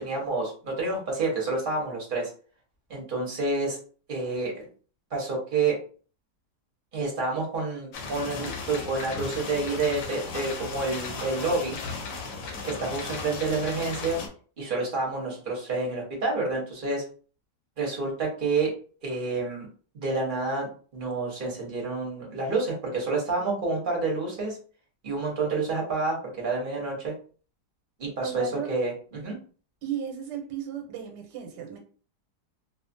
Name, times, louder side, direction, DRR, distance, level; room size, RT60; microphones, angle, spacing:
voice 1, 0.0-2.3 2.9-3.8 4.1-4.7 5.1-5.7 6.9-11.7 12.7-14.2 14.6-17.0 17.8-18.7 19.0-19.7 19.9-20.7 20.9-24.6 25.0-27.1 28.0-29.4, right 3 dB, 40° right, -2 dB, 0.8 m, -29 dB
sound 1, 7.9-14.3, left 4 dB, 65° left, 0.9 m, -36 dB
voice 2, 28.2-28.7 29.8-31.8, right 9 dB, 90° right, 3 dB, 1.3 m, -35 dB
2.6 x 2.4 x 2.5 m, 0.41 s
omnidirectional pair, 1.8 m